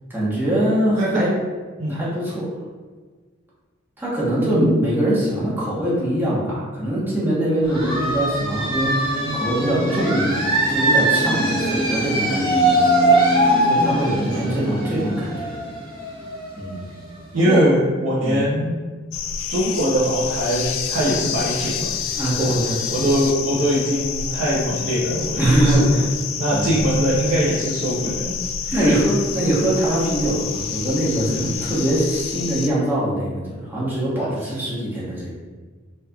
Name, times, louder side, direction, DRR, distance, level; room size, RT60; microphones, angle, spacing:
voice 1, 0.1-1.3 1.9-2.5 4.0-13.0 13.7-15.6 16.5-16.8 17.4-17.7 18.2-18.4 22.1-22.8 25.4-26.0 26.5-26.7 28.7-35.3, right 1 dB, 10° right, -8 dB, 1.0 m, -22 dB
voice 2, 1.0-1.3 1.8-2.0 4.4-4.9 14.3-15.2 17.3-18.8 19.5-21.9 22.4-22.6 22.9-25.9 26.4-28.4 28.6-29.0, equal, 70° right, -9 dB, 0.8 m, -22 dB
sound 1, 7.6-17.1, right 1 dB, 20° left, 1.1 m, -21 dB
sound 2, 19.1-32.7, left 7 dB, 70° left, 0.3 m, -28 dB
4.1 x 3.2 x 2.3 m, 1.4 s
head